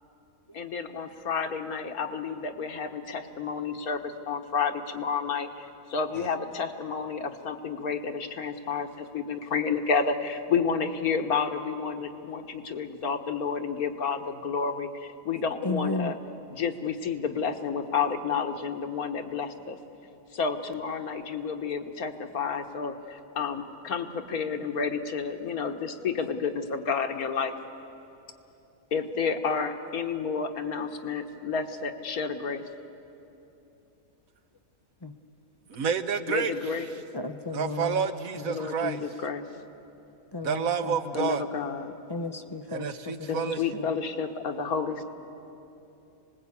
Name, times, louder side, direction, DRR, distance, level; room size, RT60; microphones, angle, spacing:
voice 1, 0.5-16.2 16.5-19.8 20.3-27.5 28.9-32.7 36.3-36.9 38.5-39.4 41.1-41.9 43.3-45.0, left 5 dB, 80° left, 6 dB, 1.7 m, -30 dB
voice 2, 15.6-16.1 35.0-35.1 37.1-38.0 38.8-39.0 40.3-40.7 42.1-42.9 43.2-43.5, left 2 dB, 30° left, 7 dB, 0.5 m, -33 dB
voice 3, 35.7-36.5 37.5-39.0 40.4-41.4 42.7-43.6, right 6 dB, 70° right, 9 dB, 1.4 m, -29 dB
27.0 x 20.0 x 8.5 m, 2.9 s
omnidirectional pair, 1.5 m